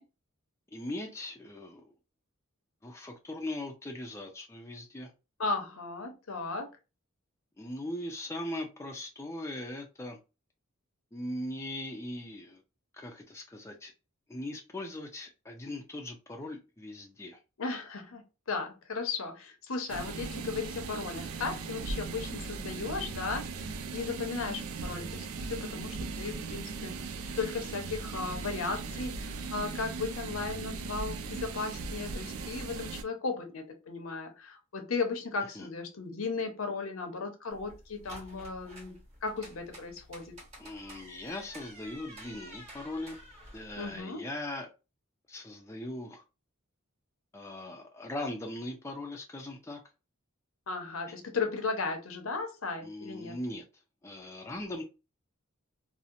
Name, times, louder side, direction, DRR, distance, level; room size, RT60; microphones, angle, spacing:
voice 1, 0.7-1.8 2.8-5.1 7.6-10.2 11.1-12.6 13.0-13.9 14.3-17.4 35.6-35.7 40.6-43.2 43.5-44.7 45.3-46.2 47.3-49.8 52.8-53.6 54.0-54.8, left 1 dB, 15° left, 0.4 m, -39 dB
voice 2, 5.4-6.7 17.6-18.2 18.5-23.5 23.9-40.3 43.8-44.3 50.7-53.4, left 4 dB, 80° left, 0.7 m, -36 dB
sound 1, 19.9-33.0, right 4 dB, 85° right, 0.4 m, -38 dB
sound 2, 37.5-44.0, equal, 30° right, 1.3 m, -50 dB
2.7 x 2.0 x 2.5 m
head